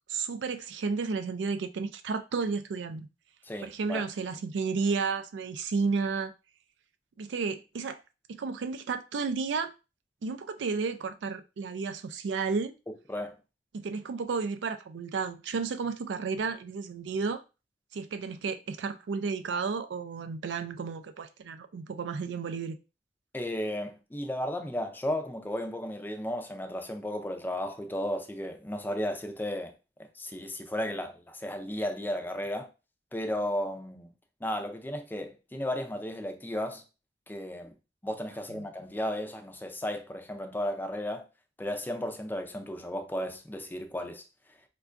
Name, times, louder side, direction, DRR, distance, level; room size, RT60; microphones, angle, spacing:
voice 1, 0.1-3.1 3.6-6.3 7.2-8.0 8.4-9.7 10.2-12.7 13.7-17.4 17.9-22.8 38.5-38.6, right 5 dB, 85° right, 0.4 m, -32 dB
voice 2, 3.4-4.0 12.9-13.3 23.3-29.7 30.2-32.7 33.1-34.1 34.4-36.8 37.3-37.7 38.0-41.3 41.6-44.2, left 1 dB, 10° left, 0.4 m, -34 dB
4.4 x 2.2 x 2.4 m
head